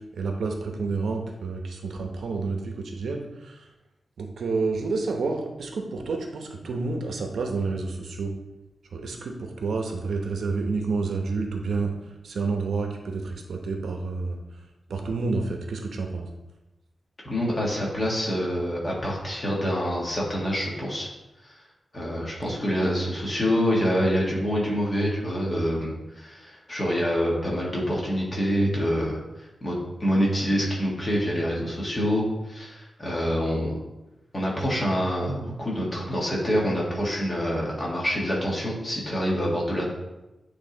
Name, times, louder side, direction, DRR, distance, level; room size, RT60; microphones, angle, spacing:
voice 1, 0.2-3.6 4.2-8.3 8.9-11.9 12.2-14.4 14.9-16.3, right 4 dB, 85° right, 3 dB, 0.9 m, -29 dB
voice 2, 17.2-21.1 21.4-21.5 21.9-29.2 29.6-33.8 34.3-39.9, equal, 25° left, -4 dB, 1.7 m, -26 dB
8.5 x 3.4 x 3.9 m, 0.98 s
wide cardioid pair, 170°, 0 cm